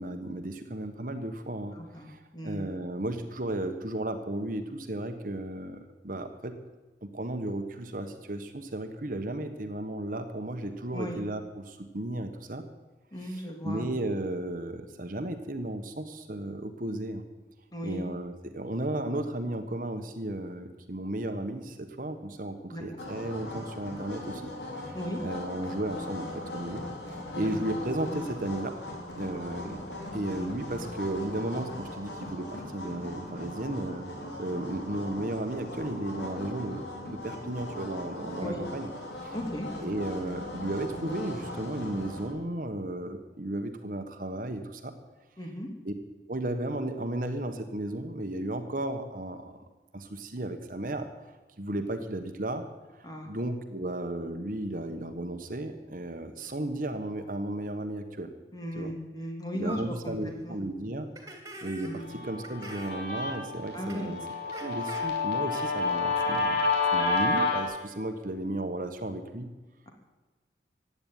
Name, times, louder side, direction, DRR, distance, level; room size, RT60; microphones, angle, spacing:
voice 1, 0.0-6.5 7.0-12.6 13.3-17.2 17.8-26.8 27.1-28.8 29.2-29.8 30.1-34.1 34.4-38.9 39.2-39.4 39.8-44.9 45.8-45.9 46.3-49.5 49.9-51.1 51.6-52.6 53.2-58.3 58.8-58.9 59.5-61.1 61.6-64.2 64.5-69.5, right 1 dB, 50° right, 7 dB, 1.4 m, -34 dB
voice 2, 1.7-2.1 2.3-2.6 10.9-11.2 13.1-13.9 17.7-18.0 22.7-23.0 24.9-25.2 27.3-27.5 38.4-38.6 39.3-39.7 45.4-45.7 53.0-53.3 58.5-60.1 60.4-60.6 61.8-62.0 63.7-64.1, equal, 20° left, 2 dB, 2.9 m, -36 dB
sound 1, 23.0-42.3, left 1 dB, 80° left, 3.9 m, -39 dB
sound 2, 59.6-59.8 60.2-60.3 61.2-62.0 62.4-63.0 63.9-64.0 64.5-65.0, right 2 dB, 20° right, 3.0 m, -43 dB
Guitar, 62.1-67.6, left 3 dB, 60° left, 4.4 m, -29 dB
16.0 x 9.8 x 9.3 m, 1.3 s
head